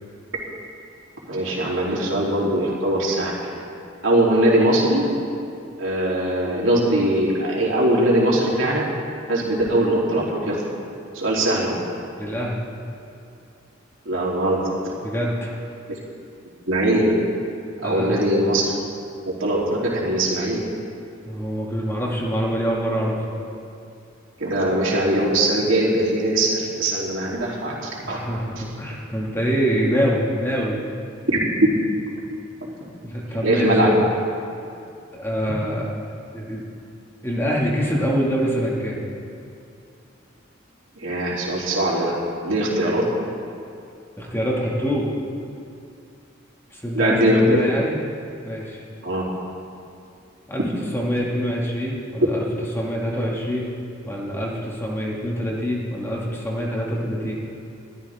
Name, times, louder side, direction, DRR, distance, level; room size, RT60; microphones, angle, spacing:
voice 1, 1.2-3.3 4.0-5.1 5.8-8.8 9.3-10.6 11.1-11.8 14.1-14.7 16.7-17.1 17.8-18.7 19.2-20.7 24.4-28.2 31.3-31.4 33.4-33.9 41.0-42.2 42.4-43.0 46.9-47.6 49.0-49.2, right 1 dB, 70° right, -5 dB, 3.5 m, -21 dB
voice 2, 12.2-12.6 15.0-15.6 17.8-18.2 21.3-23.2 28.0-30.8 33.0-34.0 35.1-35.9 36.3-36.6 37.2-39.0 44.2-45.1 46.7-48.0 48.4-48.8 50.5-50.6 50.9-52.4 52.7-53.7 54.1-57.3, equal, 15° left, -4 dB, 2.2 m, -25 dB
22.5 x 13.0 x 3.7 m, 2.5 s
head